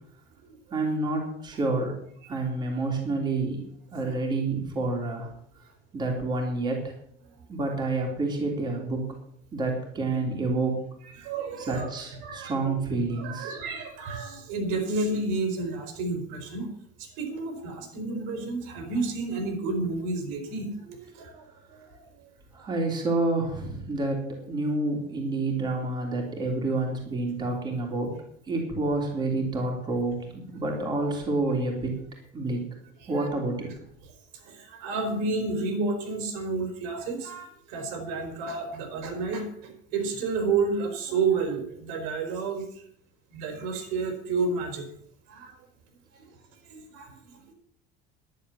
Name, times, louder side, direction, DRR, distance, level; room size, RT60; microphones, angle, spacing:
voice 1, 0.7-1.9 2.3-3.6 3.9-5.3 5.9-6.9 7.5-9.0 9.5-10.8 11.6-13.5 22.5-28.1 28.4-31.9 32.3-32.6 33.1-33.7, right 2 dB, 20° right, 0 dB, 3.0 m, -28 dB
voice 2, 11.2-11.9 12.2-12.7 13.2-16.7 17.0-21.4 21.7-22.0 33.0-33.3 34.4-42.6 43.3-44.9 45.3-45.6 46.7-47.5, right 3 dB, 80° right, 5 dB, 4.3 m, -31 dB
11.0 x 11.0 x 7.1 m, 0.67 s
cardioid pair, 175°, 21 cm